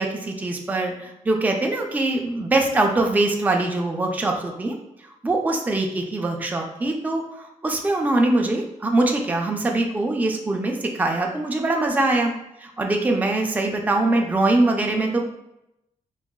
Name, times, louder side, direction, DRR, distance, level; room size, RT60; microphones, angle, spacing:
voice 1, 0.0-4.7 5.2-12.3 12.6-15.2, right 2 dB, 15° right, 1 dB, 0.4 m, -23 dB
3.9 x 2.1 x 2.2 m, 0.85 s
cardioid pair, 100°, 13 cm